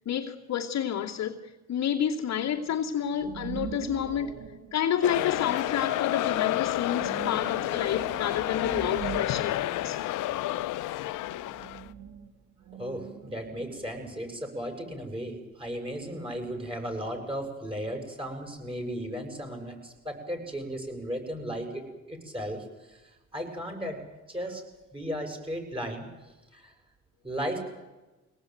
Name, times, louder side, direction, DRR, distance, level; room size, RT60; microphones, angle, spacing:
voice 1, 0.1-4.4 4.7-10.0, left 9 dB, 55° left, 2.6 m, -30 dB
sound 1, 2.3-5.9 6.4-10.5 10.8-14.0, right 7 dB, 55° right, 2.7 m, -42 dB
sound 2, 5.0-11.8, left 15 dB, 70° left, 0.9 m, -30 dB
voice 2, 12.7-24.0 24.3-24.6 24.9-26.1 26.5-26.7 27.2-27.6, equal, 15° right, 7.2 m, -35 dB
23.5 x 18.5 x 9.3 m
cardioid pair, 90°, 32 cm